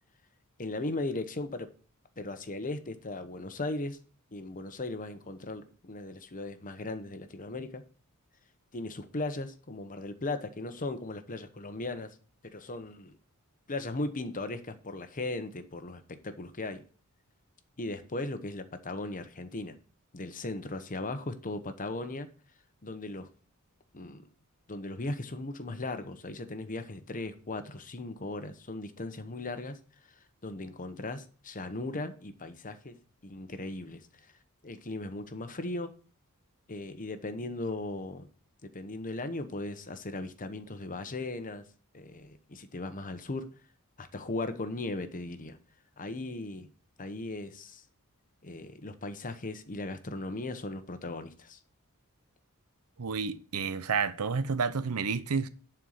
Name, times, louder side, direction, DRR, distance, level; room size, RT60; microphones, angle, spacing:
voice 1, 0.6-1.7 2.2-4.0 4.3-7.8 8.7-12.2 12.4-13.2 13.7-16.8 17.8-19.8 20.1-22.3 22.8-23.3 23.9-24.3 24.7-29.8 30.0-30.1 30.4-32.9 33.2-34.1 34.6-35.9 36.7-38.3 38.7-41.6 41.9-43.5 44.0-45.6 46.0-46.7 47.0-47.8 48.4-51.6, left 2 dB, 35° left, 1.0 m, -37 dB
voice 2, 53.0-55.5, right 5 dB, 75° right, 0.6 m, -30 dB
11.0 x 4.5 x 6.6 m
head